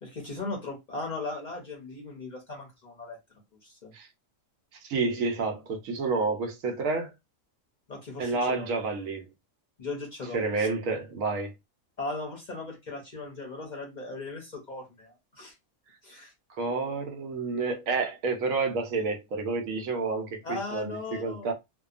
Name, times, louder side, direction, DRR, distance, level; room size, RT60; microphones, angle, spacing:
voice 1, 0.0-3.2 3.6-3.9 7.9-8.7 9.8-10.7 12.0-15.5 16.0-16.3 20.4-21.5, left 3 dB, 50° left, 0.6 m, -38 dB
voice 2, 4.8-7.1 8.2-9.3 10.3-11.5 16.6-21.5, right 3 dB, 85° right, 1.1 m, -29 dB
2.7 x 2.2 x 2.4 m
omnidirectional pair, 1.4 m